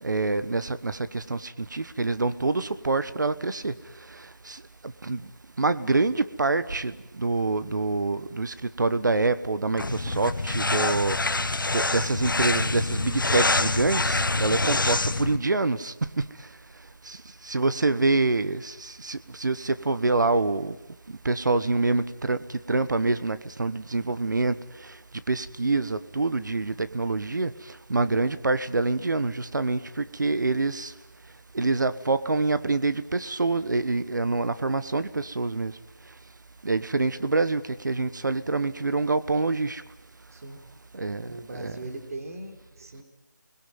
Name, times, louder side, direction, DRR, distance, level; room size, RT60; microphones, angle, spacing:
voice 1, 0.0-3.7 4.4-4.6 5.0-5.2 5.6-16.2 17.0-17.2 17.4-20.7 21.2-24.6 25.3-27.5 27.9-30.9 31.5-35.7 36.6-39.8 40.9-41.7, right 3 dB, 65° right, 13 dB, 1.2 m, -26 dB
sound 1, 9.8-15.4, left 2 dB, 80° left, 1.5 m, -26 dB
voice 2, 40.3-40.7 41.2-43.0, right 2 dB, 45° right, 5 dB, 3.7 m, -40 dB
28.5 x 21.5 x 9.3 m, 0.94 s
figure-of-eight pair, 165°, 11 cm